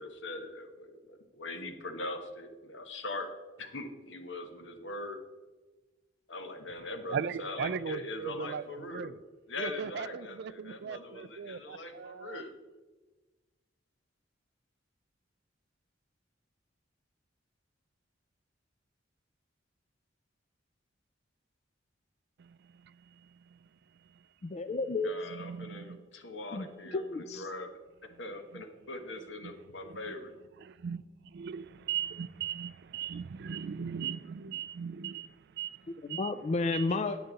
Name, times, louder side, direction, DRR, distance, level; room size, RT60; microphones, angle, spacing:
voice 1, 0.0-3.3 3.6-5.2 6.3-9.1 9.5-12.6 25.0-27.7 28.0-30.3, left 2 dB, 70° left, 1.3 m, -41 dB
voice 2, 7.1-9.2 9.6-12.4 22.4-23.6 25.3-26.0 28.5-28.6 29.4-29.5 29.8-30.0 30.6-36.3 36.7-36.9, right 7 dB, 60° right, 0.4 m, -39 dB
voice 3, 24.4-25.1 26.5-26.7 26.9-27.5 36.0-37.2, left 3 dB, 35° left, 0.4 m, -31 dB
10.0 x 8.8 x 4.0 m
head